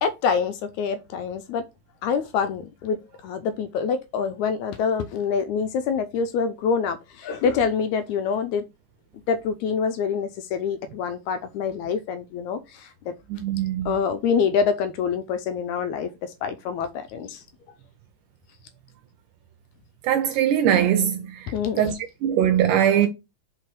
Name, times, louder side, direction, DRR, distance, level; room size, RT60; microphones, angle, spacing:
voice 1, 0.0-1.6 2.0-8.6 9.3-13.1 13.9-17.4 21.5-21.8, left 6 dB, 80° left, 1.8 m, -26 dB
voice 2, 13.3-14.0 20.0-21.5 21.8-21.9 22.2-23.1, right 10 dB, 80° right, 2.1 m, -21 dB
4.9 x 4.4 x 4.5 m
omnidirectional pair, 3.7 m